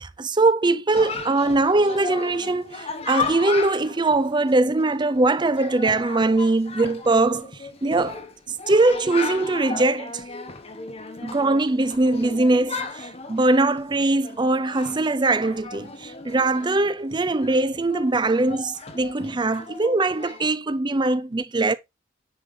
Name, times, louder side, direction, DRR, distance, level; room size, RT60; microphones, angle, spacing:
voice 1, 0.0-8.2 8.5-10.2 11.2-21.7, right 2 dB, 25° right, 0.5 m, -22 dB
Chatter, 0.9-20.5, left 4 dB, 30° left, 1.2 m, -36 dB
9.8 x 4.5 x 3.7 m
head